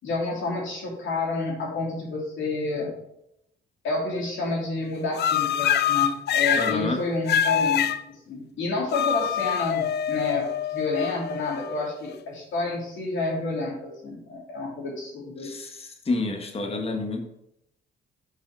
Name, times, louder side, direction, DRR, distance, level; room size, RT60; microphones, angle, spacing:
voice 1, 0.0-2.9 3.8-15.5, left 2 dB, 75° left, -3 dB, 3.1 m, -29 dB
sound 1, 5.1-6.8 7.3-8.0 8.9-12.1, left 9 dB, 60° left, 0.4 m, -25 dB
voice 2, 6.5-7.0 15.4-17.3, left 3 dB, 30° left, 2 dB, 1.2 m, -29 dB
5.4 x 4.8 x 6.0 m, 0.80 s
cardioid pair, 90°, 20 cm